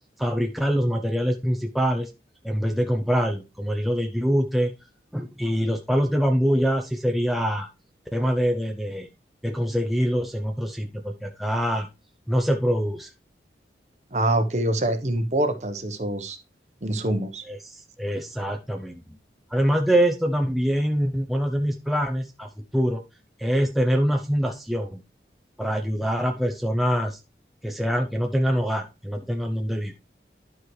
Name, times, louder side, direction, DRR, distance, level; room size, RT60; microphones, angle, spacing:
voice 1, 0.2-2.1 2.4-4.7 5.1-7.7 8.1-9.1 9.4-11.9 12.3-13.1 17.5-19.0 19.5-23.0 23.4-25.0 25.6-27.2 27.6-29.9, equal, ahead, 2 dB, 0.5 m, -24 dB
voice 2, 14.1-16.4 16.8-17.4, right 1 dB, 40° right, 7 dB, 0.9 m, -25 dB
12.0 x 4.6 x 3.2 m, 0.27 s
head